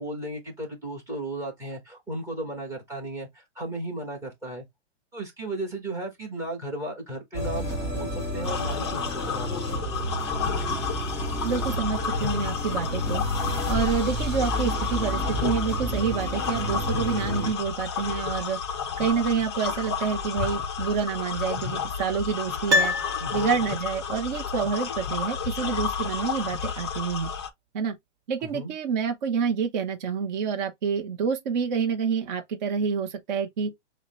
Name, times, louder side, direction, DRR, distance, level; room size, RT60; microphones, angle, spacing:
voice 1, 0.0-4.6 5.1-10.1 23.2-23.5 28.5-28.7, right 1 dB, 10° right, 1.2 m, -35 dB
sound 1, 7.3-17.5, equal, 10° left, 2.0 m, -31 dB
sound 2, 8.4-27.5, left 6 dB, 25° left, 0.4 m, -31 dB
voice 2, 11.4-13.2 13.7-18.6 19.0-22.9 23.3-27.3 27.7-27.9 28.3-33.7, right 6 dB, 40° right, 0.6 m, -28 dB
Piano, 22.7-23.9 24.2-24.3, left 2 dB, 65° right, 0.9 m, -26 dB
6.3 x 2.1 x 3.1 m
hypercardioid pair, 160°, 36 cm